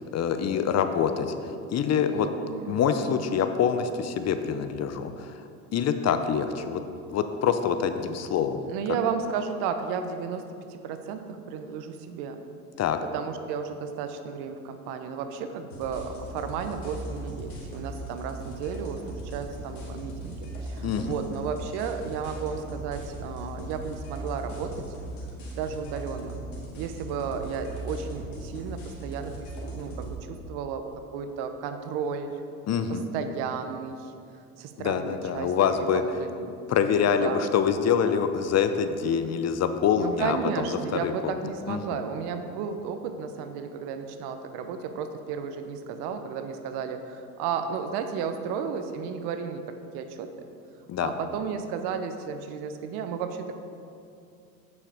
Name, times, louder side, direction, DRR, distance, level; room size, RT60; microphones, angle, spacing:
voice 1, 0.1-1.3 1.7-2.3 2.7-5.3 5.7-6.8 7.1-8.6 12.8-13.0 20.8-21.1 32.7-33.0 34.8-36.0 36.7-41.4 41.7-42.0 50.9-51.1, left 7 dB, 40° left, 9 dB, 0.7 m, -25 dB
voice 2, 1.9-2.7 8.7-10.4 10.7-12.4 13.1-24.8 25.6-26.4 26.8-32.4 32.9-34.1 34.6-36.6 37.1-37.5 39.9-50.5 51.0-53.5, right 6 dB, 65° right, 8 dB, 0.9 m, -33 dB
sound 1, 15.7-30.1, right 1 dB, 85° left, 2.3 m, -38 dB
8.7 x 6.5 x 4.9 m, 2.5 s
hypercardioid pair, 85°, 42 cm